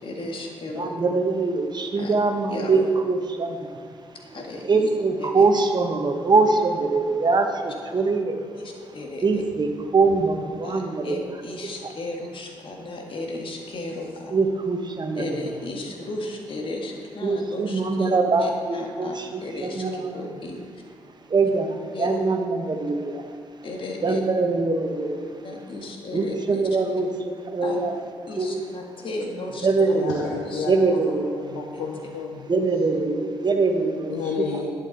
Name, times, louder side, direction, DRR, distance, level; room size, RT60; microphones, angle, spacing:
voice 1, 0.0-0.9 2.0-2.1 2.5-2.9 4.3-4.9 5.2-5.5 8.5-9.4 10.6-14.4 15.2-18.1 18.4-20.6 21.9-22.2 23.6-24.2 25.4-26.7 27.6-27.8 28.3-29.7 30.4-30.7 31.7-31.8, left 2 dB, 55° left, 1 dB, 1.9 m, -34 dB
voice 2, 0.7-3.9 4.6-8.5 9.2-11.2 11.8-11.9 14.3-15.2 17.2-20.2 21.3-23.3 24.0-25.6 26.1-27.9 28.4-28.6 29.6-30.3 30.7-31.6 32.5-34.1, right 3 dB, 40° right, 5 dB, 1.3 m, -23 dB
voice 3, 29.8-31.0 31.4-32.5 34.1-34.6, left 6 dB, 90° left, 0 dB, 0.7 m, -31 dB
11.0 x 8.4 x 4.1 m, 2.1 s
hypercardioid pair, 45°, 11 cm